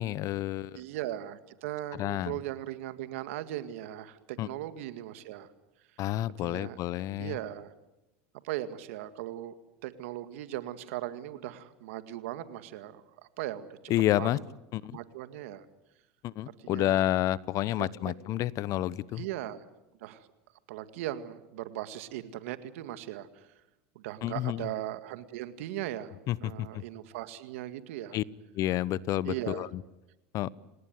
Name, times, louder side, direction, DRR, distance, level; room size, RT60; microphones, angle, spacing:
voice 1, 0.0-0.8 1.9-2.4 4.4-4.5 6.0-7.4 13.9-14.4 14.7-15.0 16.2-19.2 24.2-24.7 26.3-26.8 28.1-28.2 28.5-29.8 30.3-30.5, left 14 dB, 50° left, 21 dB, 0.9 m, -30 dB
voice 2, 0.7-5.5 6.4-6.8 7.2-7.7 8.4-9.5 9.8-13.0 13.4-13.8 14.2-14.3 14.9-15.6 16.6-17.0 17.8-18.1 19.2-19.6 20.0-20.3 20.7-23.3 24.0-26.2 26.4-28.2 29.3-29.7, right 13 dB, 80° right, 12 dB, 2.0 m, -38 dB
27.5 x 18.5 x 9.4 m, 0.94 s
supercardioid pair, 100°, 7 cm